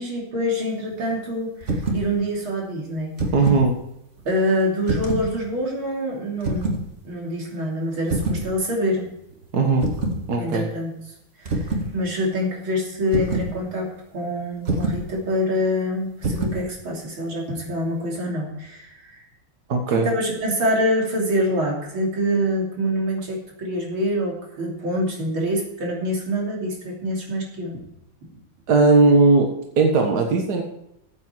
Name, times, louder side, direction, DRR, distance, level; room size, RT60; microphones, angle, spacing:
voice 1, 0.0-3.1 4.3-6.7 7.0-9.1 10.4-10.9 11.4-19.2 19.9-27.8, equal, 85° right, -1 dB, 3.9 m, -25 dB
sound 1, 1.6-2.1 3.0-3.7 4.8-5.3 6.4-6.8 8.1-8.5 9.8-10.2 11.5-11.9 13.1-13.5 14.7-15.1 16.2-16.6, right 2 dB, 35° right, 2.0 m, -25 dB
voice 2, 3.3-3.8 9.5-9.9 10.3-10.7 19.7-20.1 28.7-30.6, right 3 dB, 55° right, 3 dB, 1.9 m, -18 dB
14.5 x 8.6 x 4.6 m, 0.81 s
omnidirectional pair, 2.2 m